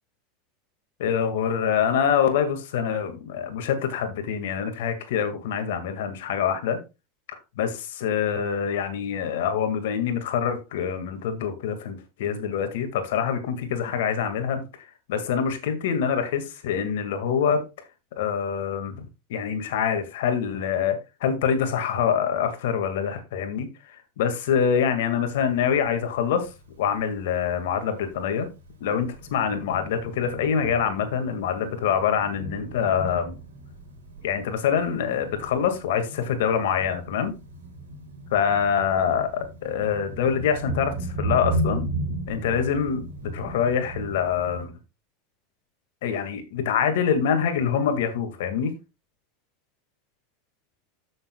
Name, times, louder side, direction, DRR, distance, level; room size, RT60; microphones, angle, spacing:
voice 1, 1.0-6.8 7.6-14.6 15.1-17.6 18.2-23.7 24.2-26.5 26.8-28.5 28.8-33.3 34.2-37.3 38.3-41.9 42.3-44.7 46.0-48.7, left 7 dB, 65° left, 1.9 m, -25 dB
Thunder, 25.3-44.6, right 2 dB, 75° right, 3.4 m, -36 dB
13.5 x 6.6 x 2.3 m
figure-of-eight pair, 80°, 0 cm